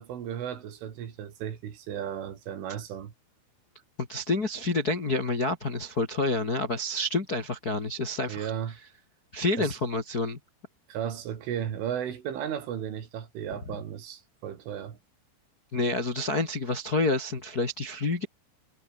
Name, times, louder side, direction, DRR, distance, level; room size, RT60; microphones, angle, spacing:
voice 1, 0.0-3.1 8.3-8.8 9.6-9.8 10.9-15.0, right 9 dB, 80° right, 5.6 m, -35 dB
voice 2, 4.0-8.5 9.3-10.4 15.7-18.3, left 2 dB, 35° left, 1.5 m, -28 dB
omnidirectional pair, 5.6 m